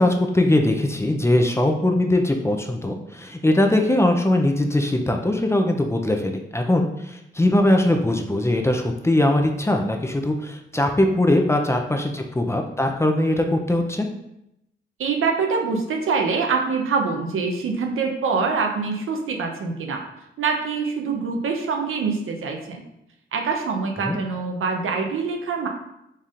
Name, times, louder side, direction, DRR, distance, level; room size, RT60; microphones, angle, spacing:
voice 1, 0.0-14.1 24.0-24.2, left 1 dB, 15° left, 3 dB, 0.5 m, -21 dB
voice 2, 15.0-20.0 20.4-22.8 23.3-25.7, right 4 dB, 75° right, 3 dB, 0.6 m, -24 dB
4.2 x 3.5 x 2.5 m, 0.84 s
cardioid pair, 60°, 21 cm